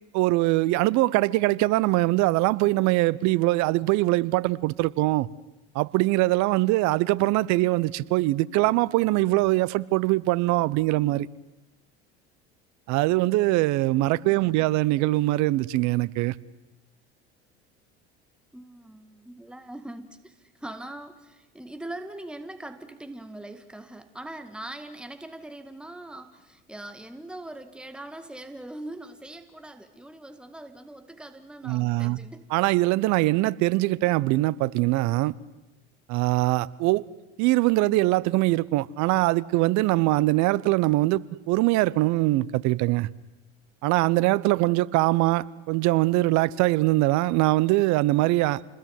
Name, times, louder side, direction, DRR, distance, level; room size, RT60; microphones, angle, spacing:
voice 1, 0.1-5.3 5.7-11.3 12.9-16.3 31.6-32.2 32.5-35.3 36.1-37.0 37.4-41.2 41.5-43.1 43.8-48.8, right 19 dB, 60° right, 1.0 m, -22 dB
voice 2, 14.0-14.7 18.5-32.5, right 1 dB, 5° right, 2.0 m, -42 dB
28.0 x 20.5 x 9.5 m
hypercardioid pair, 80°, 32 cm